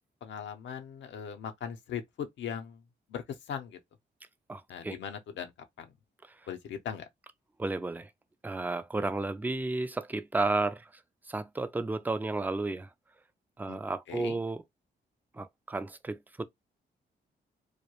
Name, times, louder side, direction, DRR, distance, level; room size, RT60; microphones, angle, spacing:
voice 1, 0.2-2.8 3.1-3.8 4.7-5.5 5.8-5.9 6.5-7.1 13.7-13.8 14.1-14.4, left 8 dB, 80° left, 0.6 m, -39 dB
voice 2, 4.5-5.0 7.6-8.1 8.4-10.9 11.3-12.9 13.6-14.6 15.3-16.4, right 3 dB, 10° right, 0.3 m, -32 dB
2.2 x 2.0 x 2.9 m
cardioid pair, 75°, 19 cm